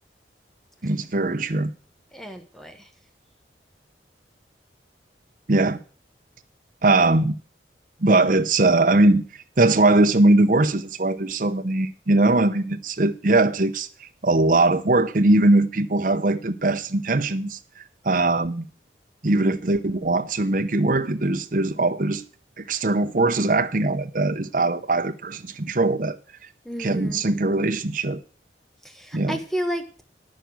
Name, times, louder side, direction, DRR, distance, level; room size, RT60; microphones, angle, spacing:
voice 1, 0.8-1.7 5.5-5.8 6.8-7.4 8.0-9.2 9.6-18.7 19.2-22.2 22.6-26.2 26.8-28.2 29.1-29.4, right 2 dB, 50° right, 0.8 m, -21 dB
voice 2, 2.1-2.9 26.6-27.2 28.8-30.0, equal, ahead, 1.1 m, -32 dB
9.3 x 6.6 x 7.5 m
head